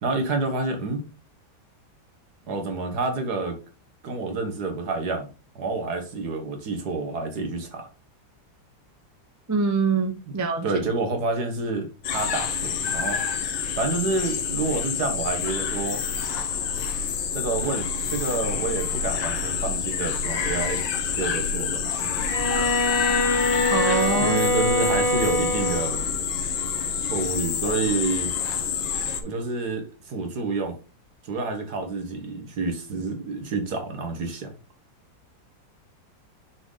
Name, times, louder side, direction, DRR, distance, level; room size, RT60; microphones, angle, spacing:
voice 1, 0.0-1.0 2.5-3.6 4.0-5.3 5.6-7.9 10.6-13.2 13.8-16.0 17.3-20.8 21.1-22.1 24.2-26.1 27.1-28.3 29.2-30.8 31.2-34.5, right 3 dB, 60° right, 1.9 m, -28 dB
voice 2, 9.5-10.7 23.7-24.3, right 4 dB, 20° right, 0.4 m, -24 dB
sound 1, 12.0-29.2, left 6 dB, 85° left, 1.7 m, -27 dB
Bowed string instrument, 22.3-26.0, left 1 dB, 25° left, 1.7 m, -24 dB
6.5 x 4.5 x 3.8 m
omnidirectional pair, 2.0 m